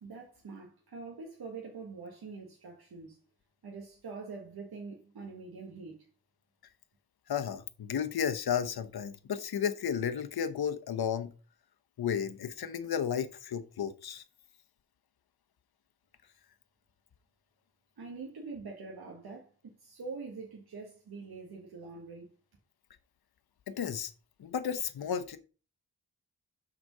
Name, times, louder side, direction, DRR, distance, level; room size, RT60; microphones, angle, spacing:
voice 1, 0.0-3.2 3.6-6.1 18.0-22.3, right 4 dB, 75° right, 1.8 m, -44 dB
voice 2, 7.3-11.3 12.0-14.2 23.7-24.1 24.4-25.4, left 8 dB, 75° left, 1.0 m, -33 dB
6.2 x 5.1 x 5.4 m
cardioid pair, 55°, 38 cm